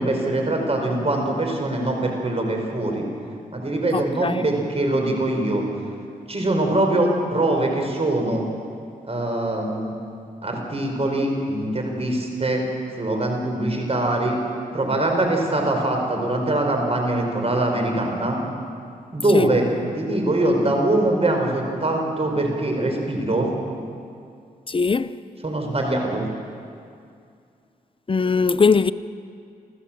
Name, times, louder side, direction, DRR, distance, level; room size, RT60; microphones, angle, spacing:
voice 1, 0.0-3.1 3.5-5.7 6.3-8.5 9.0-9.9 10.4-12.6 13.0-14.4 14.7-18.4 19.1-19.7 20.0-23.5 25.4-26.3, right 1 dB, 40° right, 5.1 m, -23 dB
voice 2, 3.9-4.5 19.3-19.5 24.7-25.2 28.1-28.9, left 5 dB, 35° left, 0.6 m, -20 dB
28.0 x 14.5 x 7.6 m
cardioid pair, 60°, 16 cm